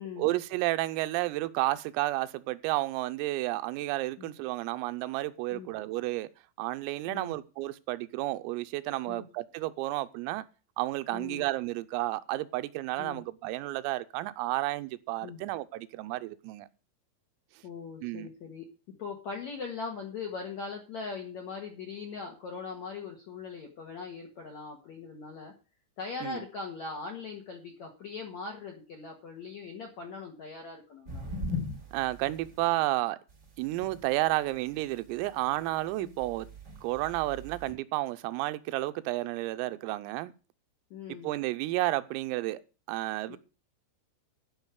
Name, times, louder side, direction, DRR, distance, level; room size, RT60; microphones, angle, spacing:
voice 1, 0.2-6.3 6.6-10.5 10.8-16.7 18.0-18.3 26.2-26.4 31.9-33.2 33.6-36.5 36.8-40.3 41.1-42.6 42.9-43.4, right 18 dB, 90° right, 3.4 m, -31 dB
voice 2, 7.1-7.4 9.1-9.2 11.1-11.4 13.0-13.2 15.2-15.4 17.6-25.5 26.0-31.3 36.0-36.2 40.9-41.3 43.3-43.4, left 5 dB, 60° left, 1.9 m, -40 dB
sound 1, 31.1-32.8 33.3-37.7, left 2 dB, 25° right, 4.7 m, -41 dB
12.0 x 5.3 x 8.0 m
omnidirectional pair, 5.8 m